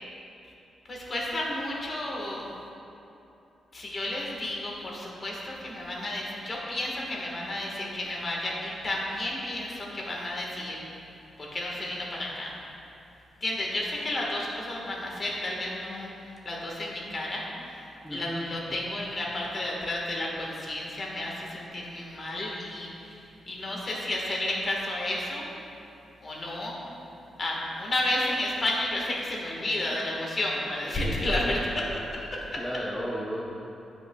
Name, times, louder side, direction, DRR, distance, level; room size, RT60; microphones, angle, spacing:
voice 1, 0.9-2.4 3.7-10.8 11.4-12.6 13.4-23.2 23.5-25.5 26.2-26.8 27.4-31.7 32.1-32.6, left 1 dB, 30° left, -3 dB, 1.5 m, -32 dB
voice 2, 18.0-18.5 31.0-31.6 32.6-33.4, equal, ahead, -6 dB, 0.7 m, -34 dB
15.5 x 6.5 x 2.3 m, 2.9 s
wide cardioid pair, 160°, 0 cm